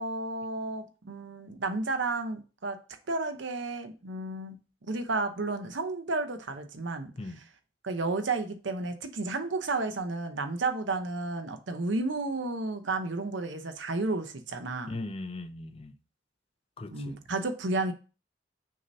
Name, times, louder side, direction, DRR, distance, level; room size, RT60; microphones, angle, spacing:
voice 1, 0.0-2.8 3.1-4.6 4.8-7.5 7.8-14.9 16.9-17.9, right 3 dB, 70° right, 0.8 m, -32 dB
voice 2, 14.9-16.0 16.8-17.2, left 2 dB, 30° left, 0.5 m, -38 dB
6.4 x 2.8 x 5.4 m
head